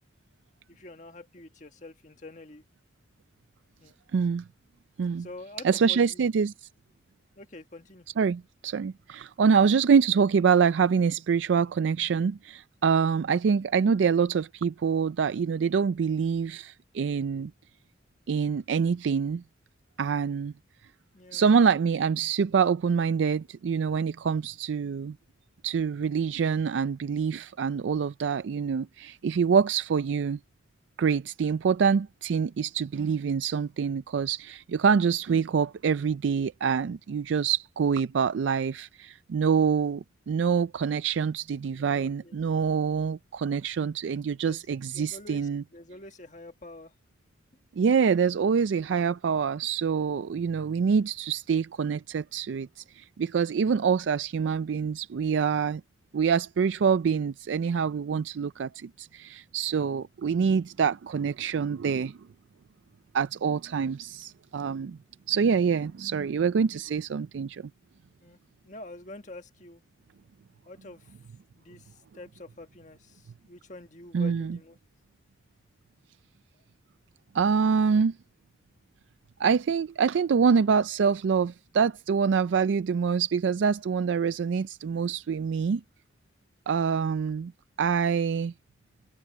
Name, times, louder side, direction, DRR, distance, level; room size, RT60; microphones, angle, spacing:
voice 1, 0.7-2.6 3.8-3.9 5.2-6.2 7.3-8.1 21.1-21.4 41.8-42.4 44.4-44.7 44.9-46.9 68.2-69.8 70.6-71.1 71.5-74.8, left 2 dB, 40° left, 1.6 m, -46 dB
voice 2, 4.1-4.4 5.0-5.3 5.6-6.7 8.2-17.5 18.3-19.4 20.0-20.5 21.3-25.2 25.6-30.4 31.0-45.6 47.8-55.8 56.1-62.2 63.1-65.0 65.3-67.6 74.1-74.6 77.3-78.2 79.4-85.8 86.7-87.5 87.8-88.5, right 6 dB, 80° right, 0.4 m, -25 dB
head